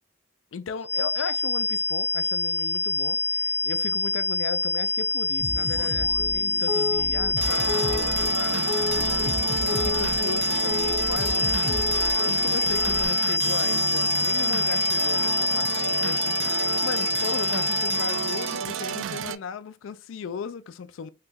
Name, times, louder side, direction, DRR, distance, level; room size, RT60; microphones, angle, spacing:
voice 1, 0.5-21.1, left 6 dB, 80° left, 0.4 m, -37 dB
sound 1, 0.8-18.6, left 3 dB, 35° left, 0.6 m, -26 dB
sound 2, 5.4-13.1, left 3 dB, 55° left, 0.9 m, -32 dB
sound 3, 7.4-19.4, right 8 dB, 75° right, 0.3 m, -31 dB
3.3 x 3.0 x 3.3 m
head